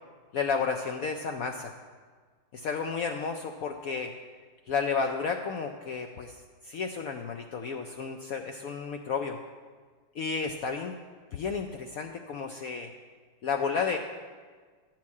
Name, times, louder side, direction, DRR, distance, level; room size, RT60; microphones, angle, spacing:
voice 1, 0.3-1.7 2.5-4.1 4.7-6.4 6.6-9.4 10.1-10.9 11.3-12.9 13.4-14.0, left 5 dB, 80° left, 4 dB, 0.8 m, -32 dB
12.0 x 4.5 x 8.3 m, 1.5 s
omnidirectional pair, 2.1 m